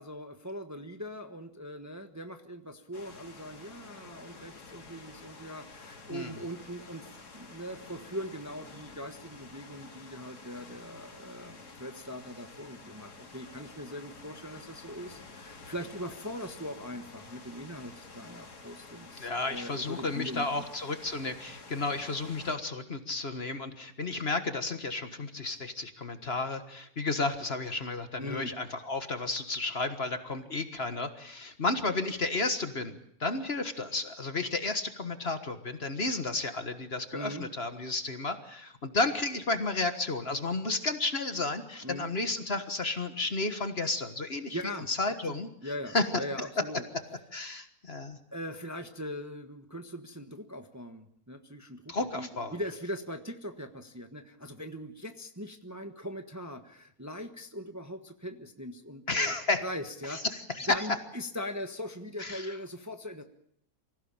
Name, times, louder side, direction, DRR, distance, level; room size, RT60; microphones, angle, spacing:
voice 1, 0.0-20.7 28.2-28.5 37.1-37.5 41.8-42.1 44.5-46.8 48.3-59.3 59.6-60.2 60.7-63.2, equal, 10° right, 6 dB, 1.2 m, -41 dB
sound 1, 2.9-22.5, left 3 dB, 80° left, 3.0 m, -50 dB
voice 2, 19.2-44.6 44.9-45.5 45.9-46.2 47.3-48.2 51.9-52.6 59.1-59.6 60.1-60.7 62.2-62.5, left 3 dB, 40° left, 9 dB, 1.7 m, -32 dB
25.0 x 16.5 x 8.9 m, 0.71 s
omnidirectional pair, 1.7 m